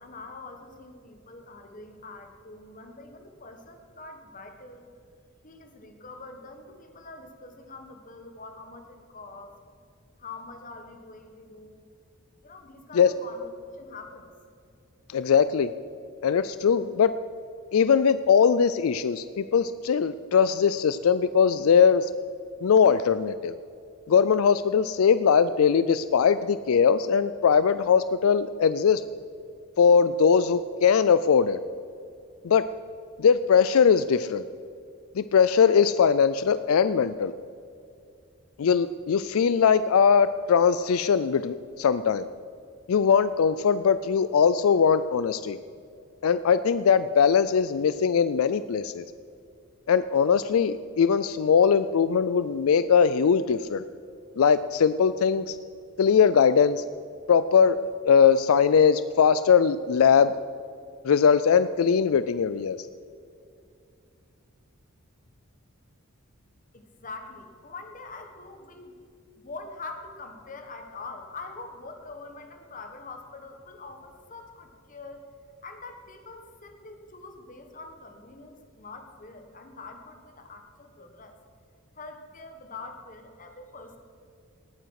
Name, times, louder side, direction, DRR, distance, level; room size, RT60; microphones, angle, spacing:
voice 1, 0.0-4.8 5.4-9.6 10.2-11.8 12.4-14.3 66.7-69.0 69.4-75.3 75.6-81.4 81.9-84.0, left 3 dB, 40° left, 5 dB, 1.5 m, -44 dB
voice 2, 15.1-15.7 16.2-17.1 17.7-22.1 22.6-23.5 24.1-29.0 29.8-31.6 32.4-32.6 33.2-34.4 35.2-37.3 38.6-42.3 42.9-45.6 46.2-49.0 49.9-53.8 54.4-55.6 56.0-56.8 57.3-60.3 61.0-62.8, left 6 dB, 80° left, 14 dB, 0.4 m, -21 dB
18.5 x 9.2 x 4.8 m, 2.4 s
head